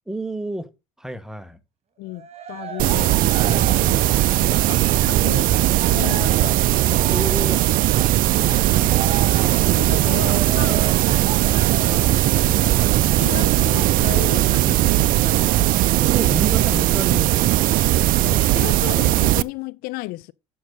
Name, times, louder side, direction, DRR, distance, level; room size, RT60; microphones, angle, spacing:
voice 1, 0.1-0.7 1.0-1.6 7.1-7.7 8.3-9.1 16.0-18.1, right 1 dB, 5° right, 1.2 m, -31 dB
voice 2, 2.0-3.2 3.7-5.6 5.9-6.6 9.7-10.9 11.3-12.3 12.8-15.5 17.0-17.2 18.2-20.3, left 20 dB, 60° left, 0.4 m, -34 dB
Cheering, 2.1-13.8, right 6 dB, 35° right, 2.4 m, -35 dB
sound 1, 2.8-19.4, right 15 dB, 55° right, 0.5 m, -18 dB
11.0 x 6.2 x 3.9 m
hypercardioid pair, 70°, 17 cm